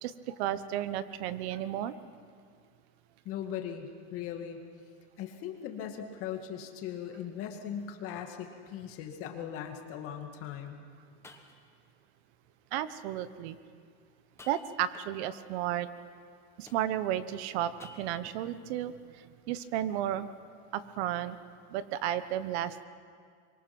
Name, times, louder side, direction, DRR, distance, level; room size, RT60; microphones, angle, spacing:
voice 1, 0.0-1.9 12.7-13.6 14.5-15.9 16.6-18.9 19.5-20.3 20.7-21.4 21.7-22.9, right 11 dB, 70° right, 13 dB, 1.2 m, -33 dB
voice 2, 3.2-4.6 5.2-10.8, left 9 dB, 40° left, 4 dB, 2.2 m, -39 dB
sound 1, 6.9-7.3 7.8-7.9 8.6-8.7 10.7-10.8 11.2-11.9 14.2-15.4 16.7-17.2 17.8-18.4, left 3 dB, 10° left, 1.3 m, -54 dB
26.0 x 23.5 x 6.1 m, 2.2 s
supercardioid pair, 160°, 33 cm